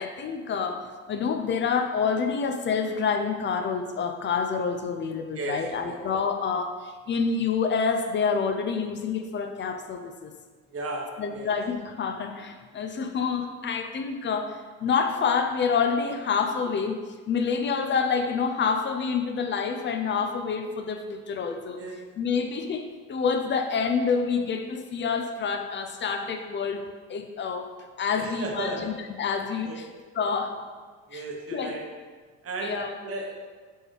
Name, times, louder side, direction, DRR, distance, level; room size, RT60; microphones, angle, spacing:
voice 1, 0.0-10.3 11.2-21.8 22.2-27.7 28.0-29.9 30.2-30.6 31.1-31.2 31.5-31.7 32.6-33.0, left 5 dB, 35° left, 6 dB, 0.4 m, -28 dB
voice 2, 5.3-6.0 10.7-11.5 21.8-22.0 28.2-28.9 29.6-29.8 31.1-31.8 32.4-33.3, right 2 dB, 40° right, 0 dB, 1.0 m, -34 dB
4.4 x 3.2 x 3.2 m, 1.5 s
supercardioid pair, 85°, 35 cm